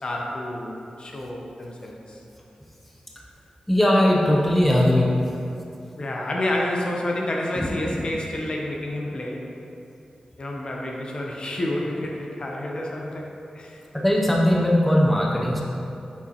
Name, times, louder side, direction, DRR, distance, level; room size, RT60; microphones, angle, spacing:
voice 1, 0.0-0.7 1.0-2.2 6.0-9.5 10.4-13.3 13.5-13.8, left 1 dB, 45° left, -1 dB, 0.7 m, -29 dB
voice 2, 3.7-5.1 7.6-7.7 8.0-8.1 13.9-15.6, left 1 dB, 5° left, -3 dB, 0.7 m, -19 dB
6.8 x 5.1 x 3.0 m, 2.7 s
wide cardioid pair, 110°, 2 cm